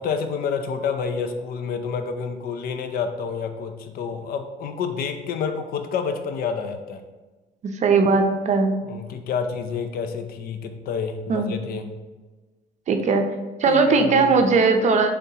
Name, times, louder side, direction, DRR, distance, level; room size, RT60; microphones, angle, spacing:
voice 1, 0.0-7.0 8.8-12.0 13.7-14.4, left 6 dB, 65° left, 8 dB, 0.5 m, -29 dB
voice 2, 7.6-8.7 11.3-11.5 12.9-13.3 13.6-15.1, right 4 dB, 45° right, 5 dB, 0.5 m, -19 dB
5.3 x 3.4 x 2.8 m, 1.2 s
cardioid pair, 110°, 17 cm